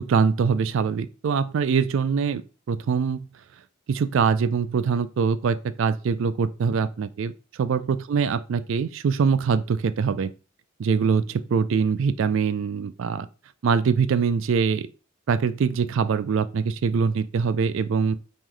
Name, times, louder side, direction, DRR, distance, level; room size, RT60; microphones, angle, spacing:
voice 1, 0.0-2.4 2.7-3.3 3.9-10.3 10.8-13.3 13.6-14.9 15.3-18.2, right 5 dB, 60° right, 0.3 m, -23 dB
3.1 x 3.0 x 3.8 m
head